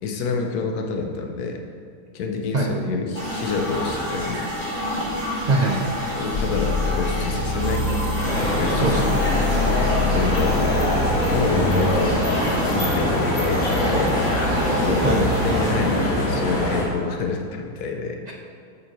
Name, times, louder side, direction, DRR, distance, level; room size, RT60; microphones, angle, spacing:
voice 1, 0.0-1.6 2.1-4.5 6.2-7.9 8.6-8.9 10.1-10.6 11.3-12.2 12.6-14.2 14.7-18.2, left 4 dB, 85° left, 3 dB, 1.3 m, -27 dB
sound 1, 3.1-15.7, equal, 75° right, 2.7 m, -29 dB
voice 2, 5.5-5.9 8.7-9.2 15.0-15.3 18.3-18.4, right 2 dB, 55° right, -1 dB, 0.4 m, -22 dB
sound 2, 6.3-12.1, left 3 dB, 45° left, 0.6 m, -26 dB
sound 3, 8.2-16.8, left 1 dB, 65° left, 1.8 m, -23 dB
8.4 x 6.8 x 3.1 m, 2.2 s
omnidirectional pair, 1.6 m